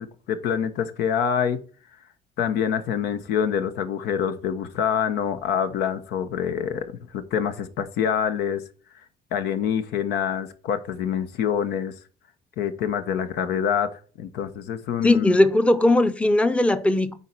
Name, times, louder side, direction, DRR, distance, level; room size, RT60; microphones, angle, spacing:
voice 1, 0.0-1.6 2.4-6.9 7.1-8.6 9.3-11.9 12.6-15.4, left 8 dB, 80° left, 1.0 m, -26 dB
voice 2, 15.0-17.2, left 1 dB, 5° left, 0.6 m, -19 dB
9.2 x 4.3 x 4.6 m
cardioid pair, 110°, 17 cm